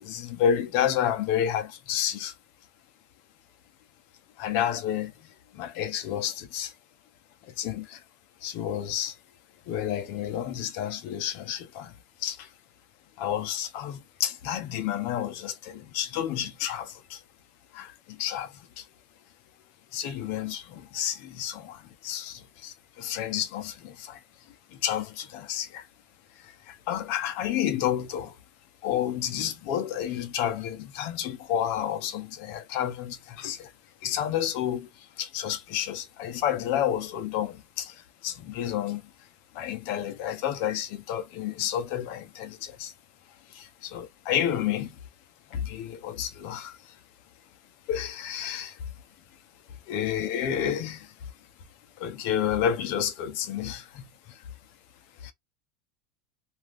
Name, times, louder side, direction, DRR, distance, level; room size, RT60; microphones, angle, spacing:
voice 1, 0.0-2.3 4.4-6.7 7.4-8.0 8.4-9.2 9.7-12.5 13.2-17.2 17.7-18.9 19.9-24.2 24.5-25.9 26.3-28.4 28.8-33.7 34.0-39.3 39.5-42.9 43.5-45.0 45.5-47.0 47.9-48.9 49.9-51.3 52.0-54.4 55.2-55.3, left 10 dB, 60° left, 0.7 m, -30 dB
2.5 x 2.3 x 3.3 m
supercardioid pair, 115°, 4 cm